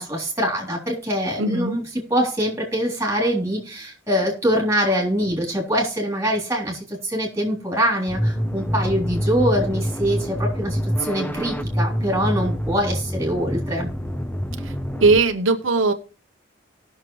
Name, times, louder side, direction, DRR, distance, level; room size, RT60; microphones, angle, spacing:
voice 1, 0.0-1.8 2.1-13.9, equal, 15° right, -2 dB, 3.4 m, -24 dB
voice 2, 1.4-1.8 14.6-14.7 15.0-15.9, right 3 dB, 80° right, 7 dB, 0.8 m, -19 dB
sound 1, 8.1-15.2, equal, 10° left, 0.7 m, -26 dB
18.5 x 6.5 x 3.1 m, 0.37 s
head